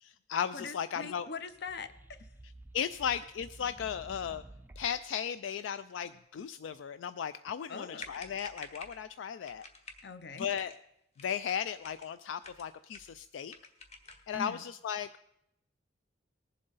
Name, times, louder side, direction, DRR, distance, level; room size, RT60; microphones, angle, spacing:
voice 1, 0.0-1.3 2.7-4.4 4.8-9.6 10.4-10.7 11.2-13.6 14.3-15.1, left 8 dB, 85° left, 13 dB, 0.3 m, -36 dB
voice 2, 0.5-2.3 7.7-8.1 10.0-10.7 14.3-14.7, left 4 dB, 60° left, 12 dB, 0.7 m, -42 dB
sound 1, 1.4-5.1, right 1 dB, 10° right, 0.4 m, -52 dB
sound 2, 8.0-9.0 9.4-10.0 10.4-10.8 11.1-12.1 12.4-13.2 13.5-14.3, left 3 dB, 35° left, 1.1 m, -49 dB
19.0 x 7.5 x 4.0 m, 0.82 s
head